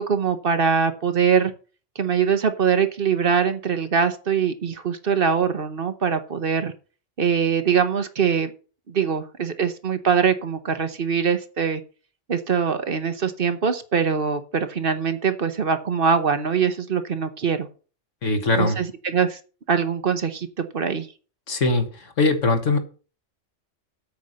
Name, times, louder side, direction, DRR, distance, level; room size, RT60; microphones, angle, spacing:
voice 1, 0.0-1.5 2.0-6.7 7.2-8.5 8.9-11.8 12.3-17.7 18.6-19.4 19.7-21.1, right 6 dB, 50° right, 1.1 m, -23 dB
voice 2, 18.2-18.8 21.5-22.8, left 2 dB, 80° left, 1.8 m, -21 dB
8.5 x 5.5 x 7.8 m
omnidirectional pair, 1.3 m